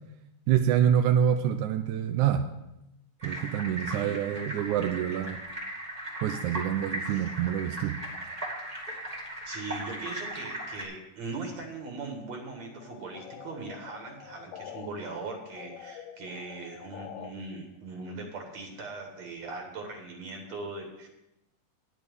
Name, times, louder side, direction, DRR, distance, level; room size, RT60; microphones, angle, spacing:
voice 1, 0.5-2.5 3.2-5.4 6.2-8.0, right 9 dB, 80° right, 6 dB, 1.9 m, -26 dB
sound 1, 3.2-10.8, right 1 dB, 15° right, 1.8 m, -38 dB
voice 2, 3.9-4.2 7.1-7.2 9.4-21.1, right 3 dB, 60° right, 2 dB, 2.6 m, -40 dB
sound 2, 12.8-14.9 15.2-17.3, left 10 dB, 75° left, 1.7 m, -45 dB
10.0 x 7.1 x 6.3 m, 0.90 s
omnidirectional pair, 3.8 m